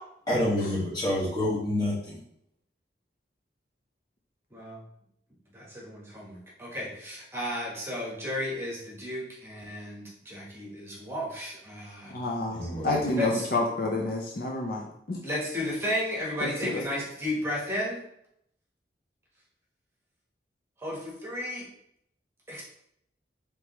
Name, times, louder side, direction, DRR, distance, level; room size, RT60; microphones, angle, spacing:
voice 1, 0.3-2.2 12.5-13.1, left 1 dB, 25° left, -7 dB, 1.5 m, -28 dB
voice 2, 4.5-4.8 5.5-12.2 13.2-13.5 15.2-18.0 20.8-21.7 22.5-22.6, left 1 dB, 15° right, -5 dB, 1.2 m, -33 dB
voice 3, 12.1-15.2 16.6-16.7, left 2 dB, 55° left, 0 dB, 0.6 m, -29 dB
4.9 x 3.3 x 3.0 m, 0.74 s
head